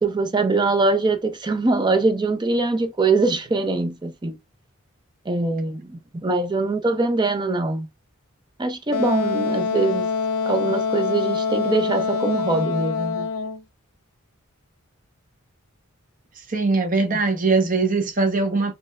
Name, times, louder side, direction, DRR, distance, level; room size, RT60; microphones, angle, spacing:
voice 1, 0.0-4.4 5.3-5.8 6.2-7.9 8.6-10.1 10.5-13.3, right 3 dB, 20° right, 0.5 m, -22 dB
Wind instrument woodwind instrument, 8.9-13.6, left 5 dB, 85° left, 0.6 m, -25 dB
voice 2, 16.5-18.7, right 3 dB, 40° right, 1.0 m, -21 dB
4.3 x 3.1 x 2.4 m
head